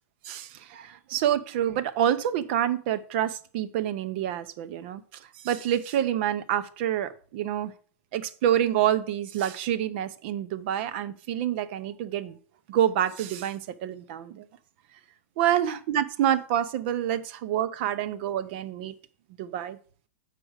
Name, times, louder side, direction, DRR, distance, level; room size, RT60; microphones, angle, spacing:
voice 1, 0.2-5.0 5.4-7.7 8.1-12.4 12.7-14.4 15.4-18.9 19.4-19.8, right 11 dB, 40° right, 13 dB, 0.7 m, -27 dB
7.6 x 5.0 x 6.4 m, 0.43 s
supercardioid pair, 165°, 9 cm